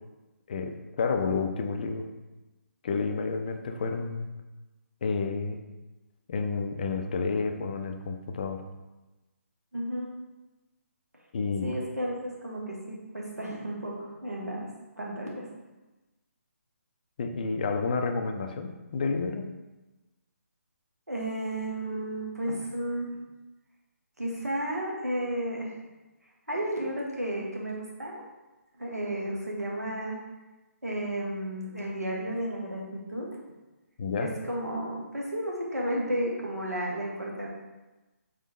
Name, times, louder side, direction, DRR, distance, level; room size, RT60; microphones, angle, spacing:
voice 1, 0.5-2.0 2.8-4.3 5.0-5.6 6.3-8.6 11.3-11.7 17.2-19.5 34.0-34.3, left 4 dB, 35° left, 6 dB, 0.3 m, -30 dB
voice 2, 9.7-10.1 11.6-14.7 15.0-15.5 21.1-23.2 24.2-25.7 26.5-28.2 28.8-30.2 30.8-33.3 34.2-37.5, right 1 dB, 85° right, -3 dB, 1.1 m, -33 dB
3.5 x 3.3 x 2.9 m, 1.1 s
figure-of-eight pair, 140°, 8 cm